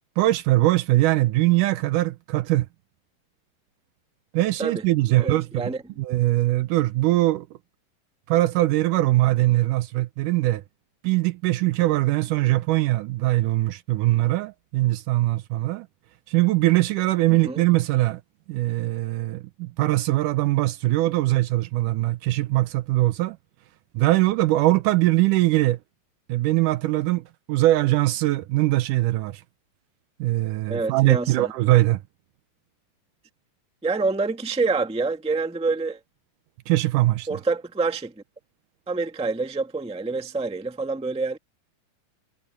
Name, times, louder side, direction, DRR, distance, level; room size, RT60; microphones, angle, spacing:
voice 1, 0.2-2.7 4.3-5.7 6.0-7.5 8.3-10.6 11.0-15.9 16.3-18.2 18.5-23.4 23.9-25.8 26.3-29.4 30.2-32.0 36.7-37.4, right 17 dB, 75° right, 2.1 m, -21 dB
voice 2, 5.2-5.8 17.3-17.6 30.7-31.5 33.8-36.0 37.3-38.1 38.9-41.4, right 3 dB, 5° right, 0.9 m, -27 dB
omnidirectional pair, 3.9 m